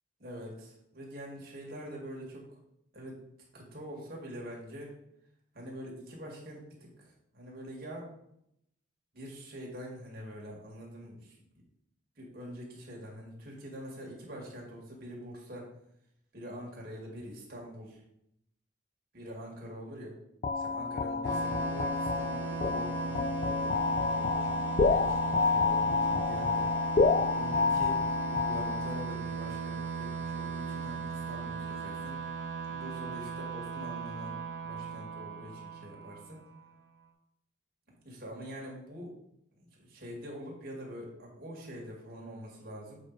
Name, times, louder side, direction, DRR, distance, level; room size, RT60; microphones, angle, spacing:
voice 1, 0.2-2.4 2.9-3.2 3.5-4.9 5.5-8.1 9.1-11.4 12.2-15.7 16.3-18.0 19.1-20.1 20.5-23.7 24.0-26.8 27.3-32.2 32.7-34.4 34.6-36.4 38.0-39.1 39.6-43.0, equal, 50° right, -2 dB, 2.0 m, -45 dB
sound 1, 20.4-29.1, left 4 dB, 35° left, 0.3 m, -29 dB
sound 2, 21.2-36.6, right 6 dB, 65° right, 1.5 m, -37 dB
7.3 x 4.5 x 4.1 m, 0.77 s
head